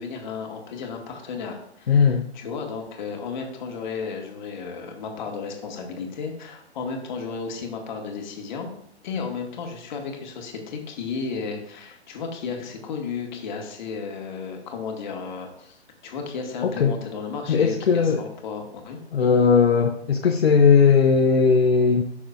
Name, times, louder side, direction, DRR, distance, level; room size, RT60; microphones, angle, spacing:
voice 1, 0.0-2.1 2.3-8.7 9.0-19.0, left 5 dB, 45° left, 2 dB, 1.8 m, -33 dB
voice 2, 1.9-2.3 16.6-17.0 17.5-18.2 19.1-22.0, left 5 dB, 65° left, 4 dB, 0.8 m, -18 dB
12.5 x 6.2 x 2.5 m, 0.70 s
figure-of-eight pair, 125°, 33 cm